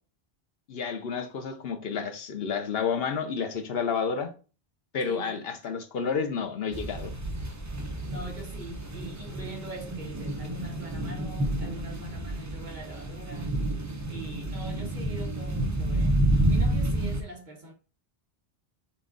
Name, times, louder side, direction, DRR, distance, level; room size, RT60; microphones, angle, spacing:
voice 1, 0.7-4.3 4.9-7.1, left 6 dB, 70° left, 0.9 m, -30 dB
voice 2, 5.0-5.4 8.0-13.6 14.1-17.7, right 1 dB, 45° right, 1.3 m, -42 dB
sound 1, 6.7-17.2, right 1 dB, 20° right, 0.5 m, -29 dB
5.8 x 2.4 x 3.8 m
omnidirectional pair, 1.1 m